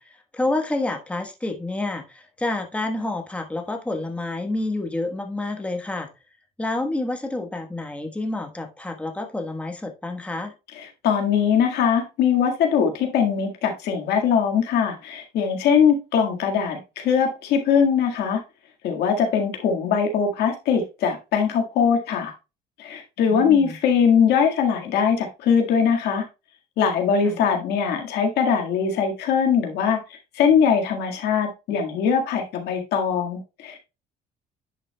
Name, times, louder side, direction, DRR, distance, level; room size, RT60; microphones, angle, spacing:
voice 1, 0.0-6.1 6.6-10.5 23.3-23.8 27.2-27.4, left 2 dB, 5° left, 1.2 m, -29 dB
voice 2, 10.8-18.4 18.8-22.3 22.8-26.2 26.8-33.8, left 7 dB, 80° left, 1.7 m, -21 dB
10.5 x 5.9 x 2.2 m
cardioid pair, 110°, 17 cm